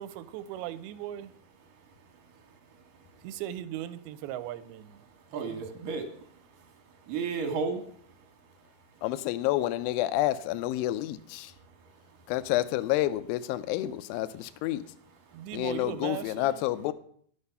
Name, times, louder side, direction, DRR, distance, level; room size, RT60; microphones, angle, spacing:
voice 1, 0.0-1.3 3.2-5.0 5.5-5.9 15.3-16.6, right 12 dB, 80° right, 2.5 m, -38 dB
voice 2, 5.3-6.4 7.0-7.9 15.3-15.4, right 5 dB, 65° right, 2.5 m, -33 dB
voice 3, 9.0-11.5 12.3-14.9 15.5-16.9, left 14 dB, 80° left, 2.2 m, -29 dB
11.5 x 6.8 x 5.5 m
omnidirectional pair, 4.6 m